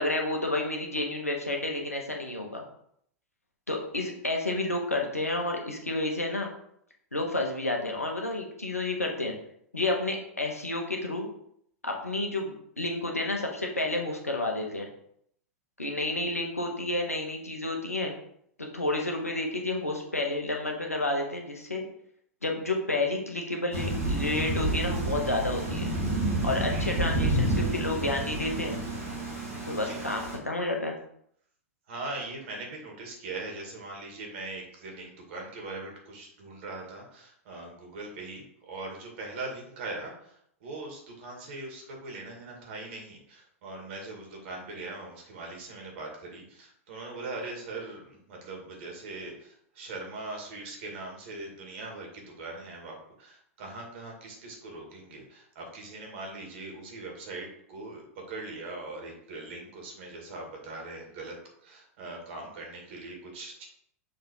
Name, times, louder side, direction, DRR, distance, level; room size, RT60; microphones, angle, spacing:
voice 1, 0.0-2.6 3.7-6.5 7.1-9.3 9.7-11.3 11.8-14.9 15.8-18.1 18.6-21.8 22.4-25.9 26.4-28.8 29.7-31.0, left 2 dB, 90° left, 1 dB, 1.3 m, -30 dB
Thunder / Rain, 23.7-30.4, right 1 dB, 75° right, 2.2 m, -29 dB
voice 2, 26.6-27.0 29.8-30.1 31.9-61.4 61.6-63.7, right 2 dB, 55° right, 1 dB, 2.3 m, -41 dB
6.4 x 3.6 x 4.6 m, 0.69 s
figure-of-eight pair, 95°, 8 cm